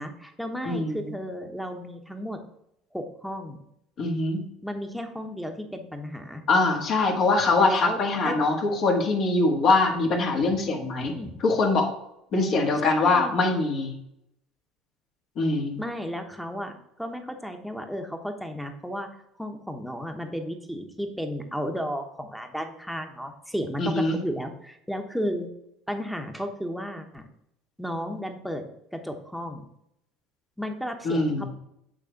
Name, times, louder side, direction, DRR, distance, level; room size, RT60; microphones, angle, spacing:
voice 1, 0.0-2.4 2.9-3.6 4.6-6.4 7.6-8.4 11.0-11.4 12.8-13.3 15.8-19.1 19.4-25.5 25.9-27.2 27.8-28.7 28.9-29.6 30.6-31.5, equal, ahead, 5 dB, 1.0 m, -33 dB
voice 2, 0.7-1.1 4.0-4.4 6.5-11.1 11.4-11.9 12.3-14.0 15.4-15.8 23.8-24.2 31.0-31.5, left 3 dB, 55° left, 1 dB, 1.6 m, -23 dB
8.4 x 3.4 x 5.2 m, 0.79 s
supercardioid pair, 85°, 0 cm